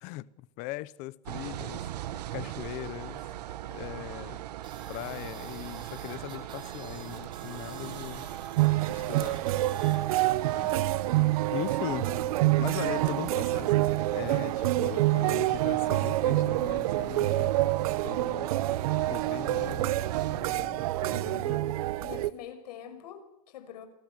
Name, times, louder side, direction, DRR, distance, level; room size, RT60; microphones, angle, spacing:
voice 1, 0.0-1.9 2.3-3.2 3.7-4.4 4.9-8.3 8.9-9.4 11.1-12.1 12.6-17.5 18.0-18.7 19.0-21.7, left 19 dB, 40° left, 0.9 m, -40 dB
sound 1, 1.3-20.4, right 12 dB, 90° right, 1.6 m, -40 dB
sound 2, 4.6-10.0, right 7 dB, 25° right, 4.4 m, -48 dB
sound 3, 8.6-22.3, right 16 dB, 65° right, 0.9 m, -27 dB
voice 2, 10.5-11.0 11.9-12.2 22.0-23.9, left 10 dB, 80° left, 6.0 m, -45 dB
28.5 x 19.0 x 8.2 m
supercardioid pair, 165°, 20 cm